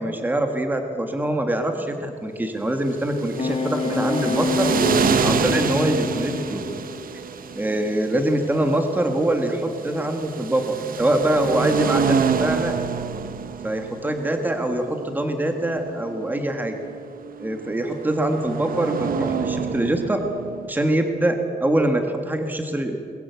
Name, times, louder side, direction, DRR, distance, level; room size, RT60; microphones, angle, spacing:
voice 1, 0.0-4.7 5.2-6.6 7.5-12.8 13.6-16.8 17.4-20.2 20.7-23.0, right 1 dB, 10° right, 5 dB, 1.6 m, -24 dB
sound 1, 2.8-20.7, right 6 dB, 65° right, 1.1 m, -28 dB
sound 2, 3.4-7.2 7.6-8.0, left 5 dB, 45° left, 0.9 m, -27 dB
23.0 x 21.0 x 8.1 m, 2.5 s
wide cardioid pair, 170°, 16 cm